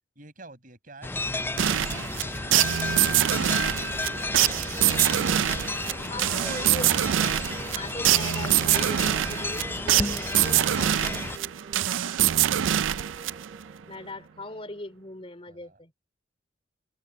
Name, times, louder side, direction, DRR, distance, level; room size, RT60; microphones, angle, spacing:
voice 1, 0.2-1.1 1.6-2.6 2.9-5.3 7.4-7.6 13.8-14.3 15.5-15.8, right 2 dB, 45° right, 7.5 m, -51 dB
sound 1, 1.0-11.4, left 2 dB, 10° left, 0.3 m, -33 dB
sound 2, 1.6-13.7, right 11 dB, 90° right, 0.4 m, -24 dB
sound 3, 2.4-14.6, right 2 dB, 25° right, 2.7 m, -48 dB
voice 2, 6.1-6.9 7.7-10.9 12.8-13.1 13.9-15.9, left 2 dB, 30° left, 3.3 m, -39 dB
open air
head